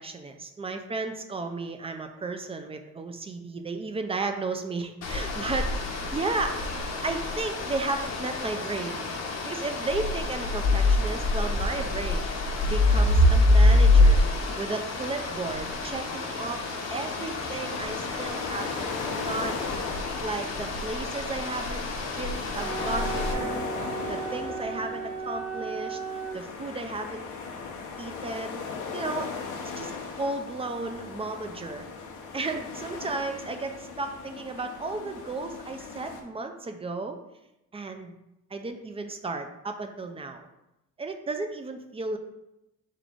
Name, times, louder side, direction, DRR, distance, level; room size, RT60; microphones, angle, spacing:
voice 1, 0.0-6.6 7.0-9.1 9.4-12.3 12.6-14.2 14.6-16.6 16.9-18.9 19.2-19.8 20.2-21.9 22.2-23.7 24.1-26.0 26.3-27.2 28.0-28.6 28.9-29.3 29.8-29.9 30.2-31.9 32.3-37.2 37.7-38.2 38.5-40.5 41.0-42.2, right 3 dB, 20° right, 6 dB, 0.4 m, -34 dB
sound 1, 5.0-23.3, left 2 dB, 60° left, 0.8 m, -26 dB
sound 2, 16.8-36.2, left 4 dB, 85° left, 0.7 m, -38 dB
Wind instrument woodwind instrument, 22.5-26.4, right 6 dB, 70° right, 0.7 m, -35 dB
3.7 x 3.6 x 3.5 m, 0.91 s
cardioid pair, 90°, 30 cm